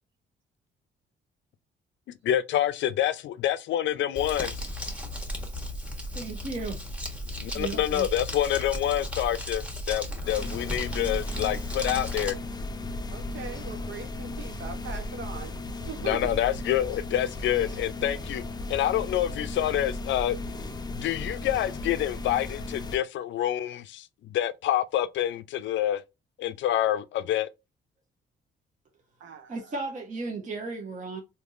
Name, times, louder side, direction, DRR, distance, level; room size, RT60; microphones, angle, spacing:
voice 1, 2.1-4.7 7.4-12.4 16.1-18.4 18.7-20.4 20.9-26.0 26.4-27.5, left 12 dB, 70° left, 0.4 m, -27 dB
Crumpling crinkling, 4.2-12.3, left 1 dB, 5° right, 1.1 m, -35 dB
voice 2, 6.1-6.8 7.5-8.1 29.5-31.2, right 3 dB, 40° right, 0.8 m, -35 dB
sound 1, 10.2-23.0, left 2 dB, 20° left, 0.5 m, -36 dB
voice 3, 13.1-15.6 15.9-16.4 29.2-29.7, right 5 dB, 70° right, 0.9 m, -40 dB
3.4 x 2.7 x 2.5 m
cardioid pair, 90°, 20 cm